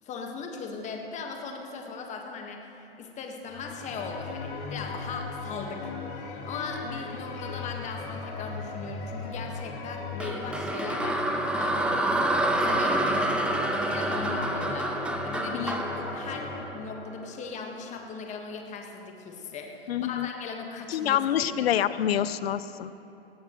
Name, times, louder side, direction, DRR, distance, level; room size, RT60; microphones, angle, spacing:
voice 1, 0.0-21.8, left 4 dB, 20° left, 2 dB, 1.5 m, -39 dB
sound 1, 3.5-16.6, left 4 dB, 50° left, 2.4 m, -38 dB
sound 2, 10.2-17.4, right 1 dB, 5° right, 0.5 m, -28 dB
voice 2, 15.5-15.8 19.9-20.3 20.9-22.9, left 10 dB, 70° left, 15 dB, 0.6 m, -27 dB
18.5 x 15.5 x 3.1 m, 2.9 s
hypercardioid pair, 125°, 32 cm